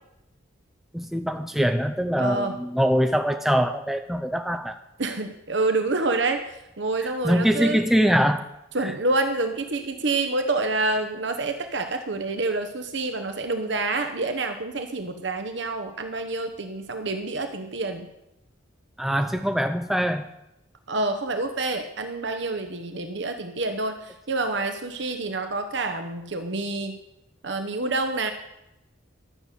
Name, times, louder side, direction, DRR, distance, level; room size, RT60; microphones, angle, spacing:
voice 1, 0.9-4.8 7.0-8.5 19.0-20.3, equal, ahead, 6 dB, 0.5 m, -23 dB
voice 2, 2.2-2.6 5.0-7.8 8.7-18.1 20.9-27.0 27.4-28.3, right 2 dB, 65° right, 6 dB, 1.0 m, -27 dB
12.5 x 6.7 x 9.1 m, 0.88 s
head